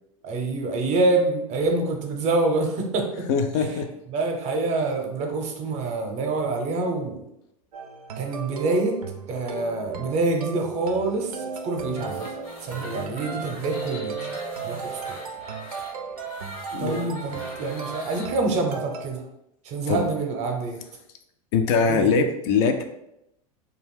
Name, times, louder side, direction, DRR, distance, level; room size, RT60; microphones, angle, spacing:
voice 1, 0.2-3.2 3.6-3.7 4.1-7.3 8.2-9.0 9.3-11.3 11.6-12.3 12.6-14.3 14.6-15.2 16.8-19.2 19.6-20.8 21.9-22.3, right 3 dB, 40° right, 3 dB, 0.6 m, -26 dB
voice 2, 3.3-3.9 16.7-17.1 19.9-20.1 21.5-22.8, left 5 dB, 50° left, 6 dB, 0.4 m, -22 dB
sound 1, 7.7-19.1, right 5 dB, 85° right, 0.4 m, -36 dB
sound 2, 11.9-18.3, left 1 dB, 70° left, 1.0 m, -40 dB
2.5 x 2.3 x 3.3 m, 0.81 s
hypercardioid pair, 90°, 19 cm